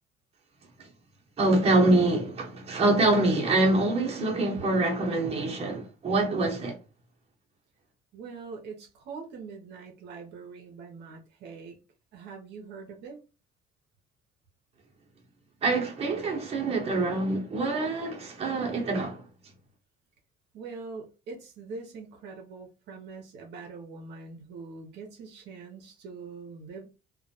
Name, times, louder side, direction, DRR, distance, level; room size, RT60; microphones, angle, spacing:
voice 1, 1.4-6.8 15.6-19.2, right 2 dB, 35° right, 0.8 m, -25 dB
voice 2, 8.1-11.8 12.1-13.2 20.5-26.9, right 4 dB, 70° right, 0.6 m, -43 dB
2.2 x 2.1 x 2.7 m
cardioid pair, 130°, 18 cm